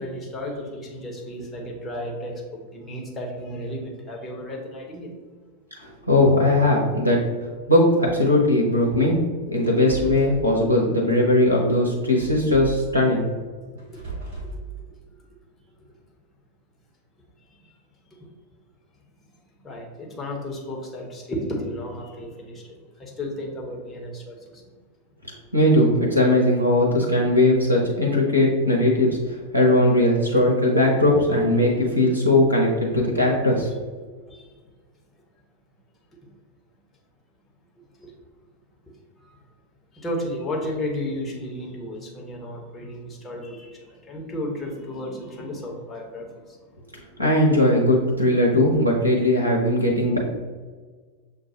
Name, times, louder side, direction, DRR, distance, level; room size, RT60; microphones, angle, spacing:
voice 1, 0.0-5.2 13.9-14.1 17.5-17.7 18.1-18.3 19.6-24.6 34.3-34.5 38.0-38.1 39.2-39.4 39.9-47.1, left 1 dB, 20° left, -1 dB, 0.9 m, -33 dB
voice 2, 5.8-7.2 7.7-9.2 9.5-13.3 25.5-33.7 47.2-50.2, left 1 dB, 85° left, 0 dB, 0.6 m, -19 dB
sound 1, 9.6-10.4 12.2-12.8 13.8-14.6, right 3 dB, 50° right, 1.4 m, -35 dB
6.4 x 2.3 x 2.8 m, 1.5 s
figure-of-eight pair, 90°, 0 cm